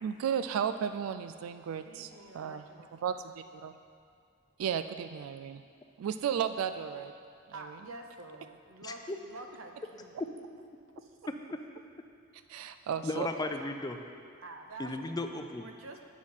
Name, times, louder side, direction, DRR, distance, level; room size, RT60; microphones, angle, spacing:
voice 1, 0.0-2.6 3.0-3.7 4.6-5.6 6.0-7.1 7.5-7.8 12.5-13.3, right 8 dB, 85° right, 11 dB, 0.3 m, -34 dB
voice 2, 1.8-2.9 7.5-10.1 11.0-11.1 14.4-15.0 15.6-16.0, right 2 dB, 65° right, 4 dB, 0.8 m, -47 dB
voice 3, 8.8-9.2 11.3-11.6 13.0-14.0 14.8-15.6, left 2 dB, 20° left, 6 dB, 0.4 m, -35 dB
8.0 x 6.2 x 5.6 m, 2.3 s
head